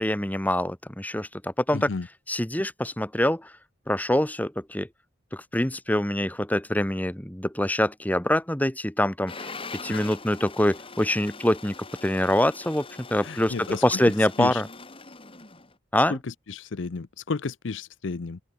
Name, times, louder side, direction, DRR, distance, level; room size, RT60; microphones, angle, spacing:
voice 1, 0.0-1.9 2.3-3.5 3.9-4.9 5.3-11.7 12.0-14.7 15.9-16.2, left 1 dB, 10° left, 1.5 m, -25 dB
voice 2, 1.7-2.1 9.9-10.1 13.2-14.0 14.4-14.6 16.1-18.4, left 4 dB, 65° left, 0.6 m, -33 dB
sound 1, 9.3-15.7, left 4 dB, 25° left, 4.4 m, -42 dB
open air
head